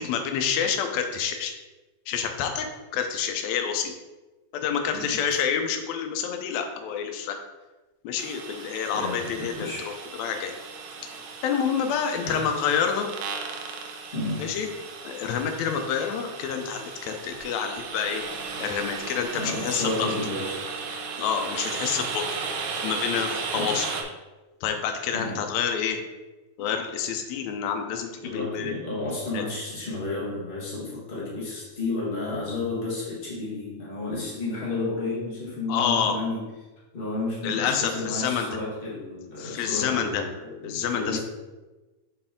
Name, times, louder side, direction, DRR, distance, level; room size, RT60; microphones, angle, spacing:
voice 1, 0.0-1.5 2.1-2.7 2.9-3.9 4.5-7.4 8.0-9.7 10.2-10.5 11.4-13.2 14.4-14.7 15.0-18.2 18.6-20.1 21.2-22.2 22.8-23.9 24.6-26.0 26.6-28.7 29.3-29.5 35.7-36.2 37.4-38.5 39.4-40.3 40.6-41.2, left 7 dB, 75° left, 5 dB, 1.8 m, -28 dB
sound 1, 8.2-24.0, right 5 dB, 75° right, 1.8 m, -35 dB
voice 2, 8.9-10.0 12.2-12.5 14.1-14.6 19.3-20.6 23.5-23.8 25.1-25.4 28.2-36.4 36.9-41.2, left 2 dB, 45° left, -6 dB, 0.7 m, -32 dB
6.7 x 4.6 x 3.7 m, 1.2 s
omnidirectional pair, 3.7 m